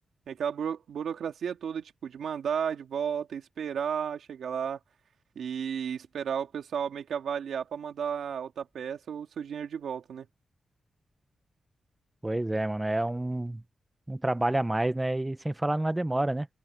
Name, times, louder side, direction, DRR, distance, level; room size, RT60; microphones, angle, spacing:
voice 1, 0.3-4.8 5.4-10.3, right 7 dB, 90° right, 2.7 m, -33 dB
voice 2, 12.2-13.6 14.1-16.5, right 1 dB, 15° right, 1.2 m, -28 dB
open air
cardioid pair, 80°, 0 cm